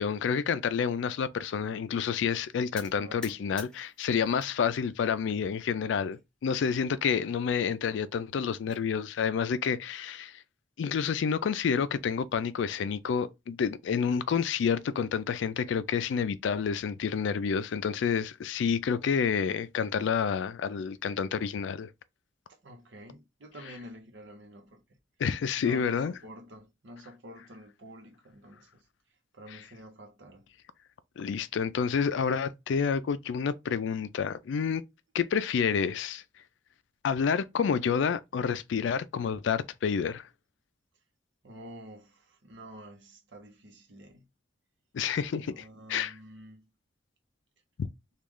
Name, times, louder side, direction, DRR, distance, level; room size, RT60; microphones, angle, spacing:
voice 1, 0.0-10.4 10.8-21.9 25.2-26.1 29.5-29.6 31.2-34.8 35.1-36.2 37.0-40.3 44.9-46.1 47.8-47.9, left 6 dB, 75° left, 0.3 m, -29 dB
sound 1, 2.8-4.5 4.9-5.6 6.1-6.2 6.5-6.6 7.0-7.1 8.2-8.8, left 1 dB, 5° left, 0.5 m, -49 dB
voice 2, 3.0-3.4 22.5-25.0 25.6-28.8 29.3-30.5 41.4-44.2 45.3-46.7, equal, 70° right, 0.8 m, -49 dB
3.1 x 2.4 x 3.6 m
head